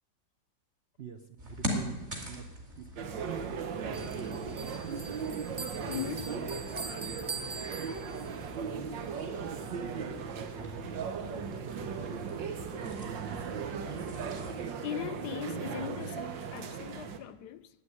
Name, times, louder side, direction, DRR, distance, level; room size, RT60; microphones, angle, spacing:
voice 1, 1.0-2.5 2.7-2.8 3.6-3.7 4.1-5.1 6.0-6.5 7.3-8.8 9.5-12.3 12.8-13.9, right 6 dB, 55° right, 0.7 m, -47 dB
sound 1, 1.4-14.7, equal, 40° right, 2.8 m, -43 dB
sound 2, 3.0-17.2, right 6 dB, 85° right, 1.8 m, -37 dB
Bell, 3.9-8.4, right 3 dB, 20° right, 0.6 m, -43 dB
voice 2, 5.9-6.6 7.9-8.0 14.8-17.7, left 11 dB, 70° left, 1.1 m, -39 dB
11.0 x 8.8 x 9.8 m
omnidirectional pair, 1.9 m